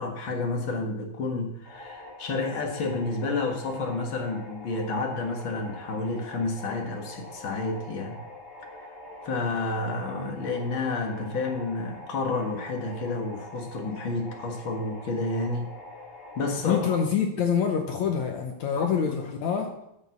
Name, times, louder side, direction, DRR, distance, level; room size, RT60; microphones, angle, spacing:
voice 1, 0.0-8.2 9.2-15.7 16.4-16.8 18.8-18.9, left 3 dB, 50° left, 2 dB, 1.7 m, -30 dB
sound 1, 1.6-17.0, left 2 dB, 20° left, 2.0 m, -44 dB
voice 2, 16.7-19.7, left 7 dB, 70° left, 3 dB, 1.9 m, -26 dB
10.5 x 7.2 x 6.9 m, 0.83 s
omnidirectional pair, 4.2 m